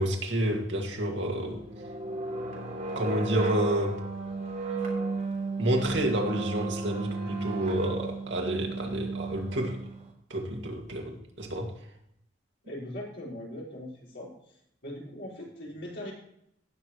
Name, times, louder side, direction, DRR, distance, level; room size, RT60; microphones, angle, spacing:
voice 1, 0.0-1.6 3.0-4.0 5.6-9.8 10.3-11.7, right 1 dB, 70° right, 1 dB, 2.1 m, -29 dB
sound 1, 1.3-10.1, right 3 dB, 45° right, 3.0 m, -34 dB
voice 2, 12.6-14.3 14.8-16.1, left 1 dB, 65° left, -5 dB, 5.1 m, -40 dB
18.0 x 6.7 x 3.1 m, 0.72 s
head